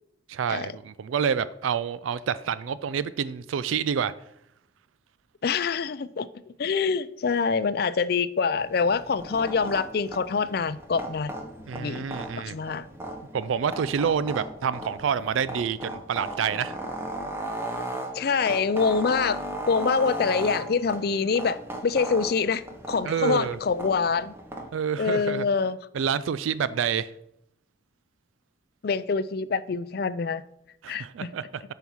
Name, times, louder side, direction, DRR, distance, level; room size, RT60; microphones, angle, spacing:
voice 1, 0.3-4.1 11.7-12.6 13.3-16.8 23.1-23.6 24.7-25.5 25.9-27.1 30.8-31.6, right 7 dB, 85° right, 16 dB, 0.4 m, -28 dB
voice 2, 5.4-11.3 11.7-12.0 12.4-12.9 18.1-19.4 19.7-24.3 25.0-25.8 28.8-30.4 30.9-31.3, left 5 dB, 50° left, 15 dB, 0.4 m, -25 dB
sound 1, 8.6-24.7, right 1 dB, 10° right, 0.8 m, -37 dB
9.2 x 5.7 x 4.6 m, 0.77 s
head